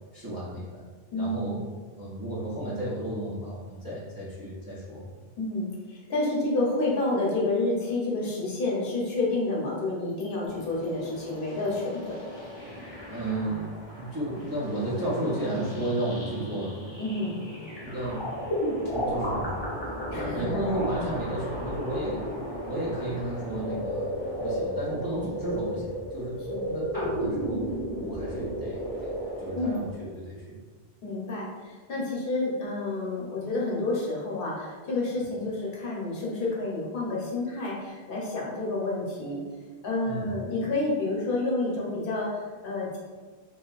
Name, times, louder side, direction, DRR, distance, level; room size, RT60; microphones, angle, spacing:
voice 1, 0.1-0.8 1.1-1.7 2.0-5.1 13.1-13.7 14.0-16.8 17.8-18.3 18.8-19.6 20.1-22.3 22.6-27.7 28.0-30.6 40.1-40.3, right 1 dB, 35° right, -9 dB, 0.3 m, -33 dB
voice 2, 1.1-1.5 5.4-12.2 17.0-17.4 20.1-20.5 26.5-26.7 29.5-29.8 31.0-39.4 39.8-43.0, left 2 dB, 60° left, -4 dB, 0.9 m, -29 dB
sound 1, 10.5-29.9, equal, 30° left, 0.6 m, -34 dB
2.6 x 2.3 x 2.3 m, 1.4 s
omnidirectional pair, 1.1 m